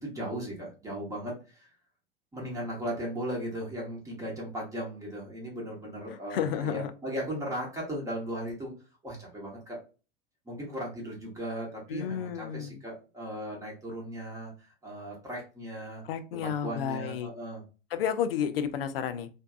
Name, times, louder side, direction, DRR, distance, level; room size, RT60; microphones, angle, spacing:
voice 1, 0.0-1.7 2.3-8.7 9.0-9.8 10.4-16.0 16.3-17.6, equal, 10° right, -3 dB, 0.9 m, -37 dB
voice 2, 6.1-6.9 11.9-12.8 16.1-17.3 17.9-19.3, left 8 dB, 70° left, 9 dB, 0.5 m, -31 dB
2.6 x 2.2 x 2.2 m, 0.33 s
figure-of-eight pair, 85°, 31 cm